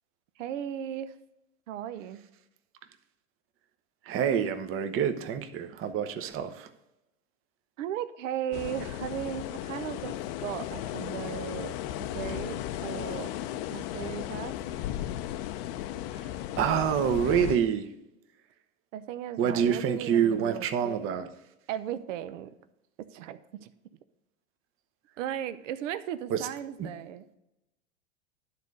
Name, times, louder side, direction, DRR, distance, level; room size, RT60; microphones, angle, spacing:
voice 1, 0.4-1.1 1.7-2.2 7.8-11.8 12.1-13.3 13.7-14.5 18.9-21.2 21.7-22.5 23.0-23.7 25.2-27.4, right 10 dB, 70° right, 0.8 m, -36 dB
voice 2, 4.0-6.7 16.6-17.9 19.4-21.3 26.3-26.5 26.8-26.9, right 8 dB, 35° right, 0.9 m, -27 dB
sound 1, 8.5-17.6, left 12 dB, 45° left, 0.6 m, -35 dB
11.5 x 4.1 x 6.4 m
hypercardioid pair, 110°, 39 cm